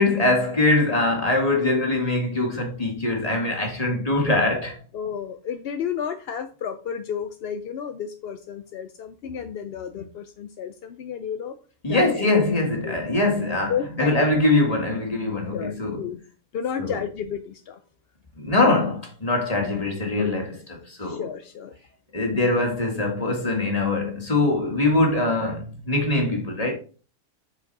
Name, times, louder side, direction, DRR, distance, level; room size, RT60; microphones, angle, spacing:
voice 1, 0.0-4.8 11.8-16.1 16.8-17.0 18.4-20.6 20.8-21.2 22.1-26.7, left 2 dB, 25° left, 2.0 m, -22 dB
voice 2, 4.9-11.5 11.9-12.3 12.8-13.0 13.7-14.2 15.5-16.2 16.5-17.8 20.2-20.3 21.0-21.7, left 8 dB, 60° left, 0.6 m, -32 dB
7.8 x 4.9 x 4.1 m
omnidirectional pair, 1.5 m